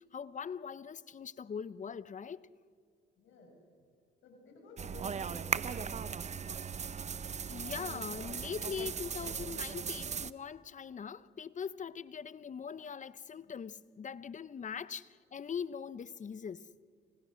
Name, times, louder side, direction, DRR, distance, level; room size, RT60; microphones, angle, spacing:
voice 1, 0.0-2.5 7.5-16.7, left 7 dB, 40° left, 0.8 m, -41 dB
voice 2, 3.2-3.5 4.2-6.1, left 2 dB, 75° left, 6.6 m, -52 dB
sound 1, 4.8-10.3, right 6 dB, 35° right, 0.8 m, -38 dB
29.5 x 27.0 x 6.4 m
cardioid pair, 85°, 20 cm